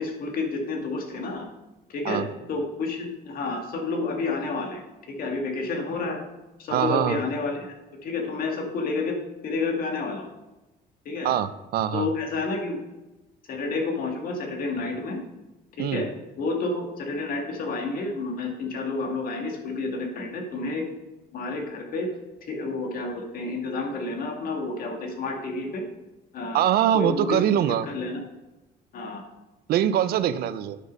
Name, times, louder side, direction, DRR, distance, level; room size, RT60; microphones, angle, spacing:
voice 1, 0.0-1.5 1.9-2.2 2.5-4.8 5.1-6.2 6.6-7.7 8.0-9.2 9.4-10.3 11.1-11.3 11.9-12.8 13.5-15.2 15.8-16.1 16.4-20.8 21.3-22.1 22.4-25.8 26.3-26.6 26.9-28.2 28.9-29.2, left 3 dB, 60° left, 2 dB, 2.1 m, -30 dB
voice 2, 6.7-7.2 11.2-12.1 15.8-16.0 26.5-27.9 29.7-30.8, right 10 dB, 65° right, 12 dB, 0.6 m, -23 dB
9.5 x 6.6 x 5.4 m, 1.1 s
cardioid pair, 110°, 17 cm